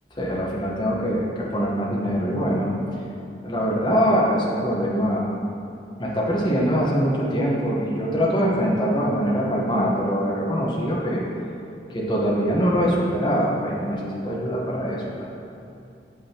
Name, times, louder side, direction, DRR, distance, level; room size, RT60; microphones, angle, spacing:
voice 1, 0.2-2.7 3.4-5.3 6.0-11.2 11.9-15.3, equal, 25° left, -4 dB, 1.1 m, -23 dB
8.5 x 7.6 x 2.9 m, 2.6 s
head